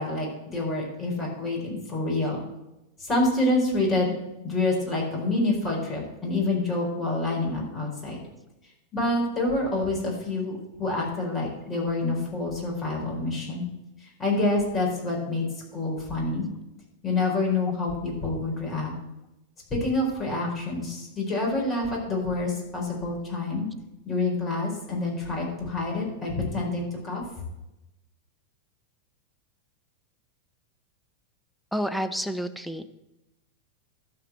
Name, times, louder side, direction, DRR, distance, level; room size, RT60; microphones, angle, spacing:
voice 1, 0.0-2.4 3.0-4.1 4.4-8.2 8.9-10.5 10.8-13.7 14.0-15.5 15.7-16.5 17.0-18.9 19.7-23.7 24.0-27.2, left 2 dB, 25° left, -2 dB, 4.7 m, -27 dB
voice 2, 31.7-32.9, equal, ahead, 11 dB, 0.8 m, -29 dB
12.5 x 5.1 x 7.8 m, 0.95 s
figure-of-eight pair, 90°, 0 cm